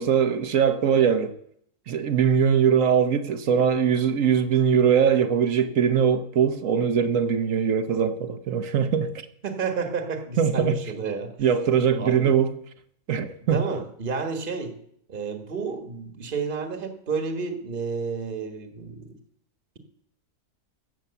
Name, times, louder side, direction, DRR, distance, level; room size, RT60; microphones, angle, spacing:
voice 1, 0.0-1.4 1.9-9.1 10.4-10.8 11.4-12.5 13.1-13.7, right 7 dB, 55° right, 1.2 m, -21 dB
voice 2, 9.4-11.3 12.0-12.3 13.5-14.7 15.1-19.1, right 5 dB, 35° right, 1.5 m, -30 dB
15.5 x 7.5 x 6.9 m
omnidirectional pair, 1.8 m